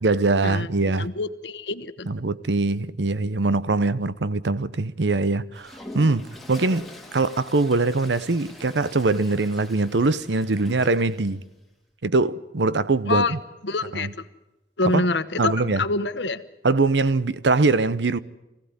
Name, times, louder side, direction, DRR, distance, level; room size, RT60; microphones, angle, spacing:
voice 1, 0.0-1.1 2.1-6.9 7.1-11.4 12.0-13.4 13.9-14.1 14.9-15.0 15.4-15.8 16.6-18.2, right 3 dB, 85° right, 0.8 m, -22 dB
voice 2, 1.0-2.1 13.1-13.3 13.6-14.1 14.8-16.4, left 3 dB, 85° left, 1.1 m, -26 dB
Toilet flush, 5.5-11.3, left 1 dB, ahead, 2.0 m, -43 dB
23.5 x 16.5 x 9.6 m
head